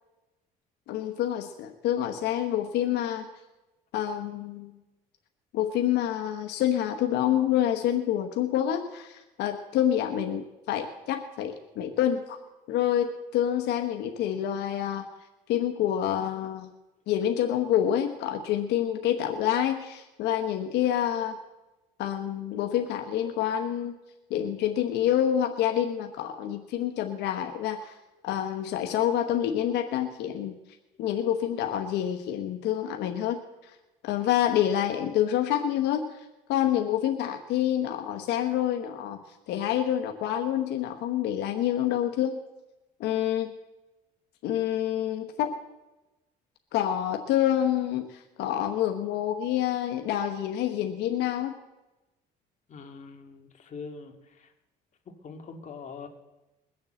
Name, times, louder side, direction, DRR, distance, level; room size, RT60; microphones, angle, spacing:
voice 1, 0.9-3.2 3.9-4.7 5.5-12.4 12.7-15.0 15.5-16.7 17.1-21.4 22.0-23.9 24.3-27.9 28.2-30.5 31.0-33.7 34.0-39.2 39.5-42.4 43.0-43.5 44.4-45.6 46.7-51.5, left 11 dB, 85° left, 5 dB, 1.1 m, -27 dB
voice 2, 52.7-54.5 55.2-56.1, left 5 dB, 45° left, 4 dB, 2.2 m, -43 dB
21.5 x 7.2 x 7.6 m, 1.0 s
cardioid pair, 110°, 17 cm